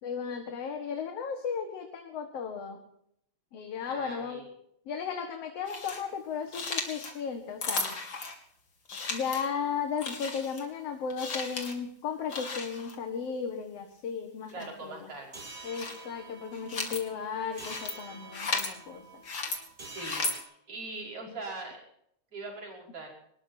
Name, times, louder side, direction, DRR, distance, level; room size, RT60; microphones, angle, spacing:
voice 1, 0.0-2.8 3.5-4.5 4.9-8.0 9.1-15.1 15.6-19.2, left 6 dB, 60° left, 4 dB, 2.6 m, -35 dB
voice 2, 3.9-4.4 14.5-15.4 19.9-21.8 22.3-23.1, right 3 dB, 50° right, 0 dB, 6.3 m, -41 dB
sound 1, 5.7-6.0 6.5-7.1 7.6-8.3 8.9-9.5 10.0-10.7 11.1-11.7 12.3-13.0 14.5-14.7 15.5-16.0 16.4-17.0 17.5-17.9 18.3-18.7 19.2-19.6 20.0-20.3, left 3 dB, 40° left, 3.1 m, -35 dB
sound 2, 15.3-20.4, right 3 dB, 30° right, 3.1 m, -47 dB
24.5 x 20.0 x 2.8 m, 0.72 s
omnidirectional pair, 3.3 m